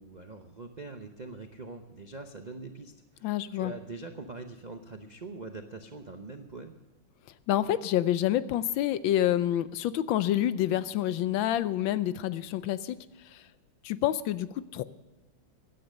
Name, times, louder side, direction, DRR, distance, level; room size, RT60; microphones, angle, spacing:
voice 1, 0.0-6.8, right 3 dB, 80° right, 5 dB, 0.4 m, -43 dB
voice 2, 3.2-3.7 7.5-13.0 13.3-13.4 13.8-14.8, left 12 dB, 75° left, 15 dB, 1.3 m, -28 dB
16.0 x 9.9 x 6.4 m, 1.2 s
omnidirectional pair, 2.2 m